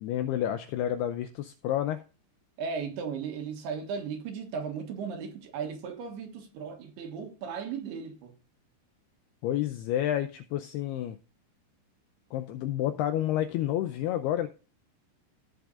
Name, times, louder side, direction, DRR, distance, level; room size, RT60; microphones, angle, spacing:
voice 1, 0.0-2.0 9.4-11.2 12.3-14.5, left 12 dB, 80° left, 2.3 m, -29 dB
voice 2, 2.6-8.3, right 6 dB, 65° right, 3.2 m, -36 dB
17.0 x 6.2 x 2.5 m
omnidirectional pair, 5.3 m